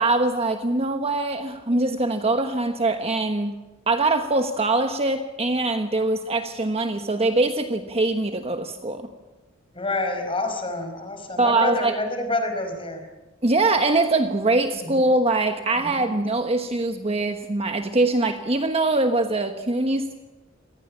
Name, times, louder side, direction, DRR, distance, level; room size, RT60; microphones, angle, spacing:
voice 1, 0.0-3.6 3.9-9.1 11.4-12.0 13.4-20.2, right 2 dB, 30° right, 6 dB, 1.3 m, -23 dB
voice 2, 9.7-13.1 14.8-14.9 15.7-16.1, left 2 dB, 25° left, 6 dB, 4.9 m, -28 dB
26.5 x 19.5 x 7.4 m, 1.1 s
head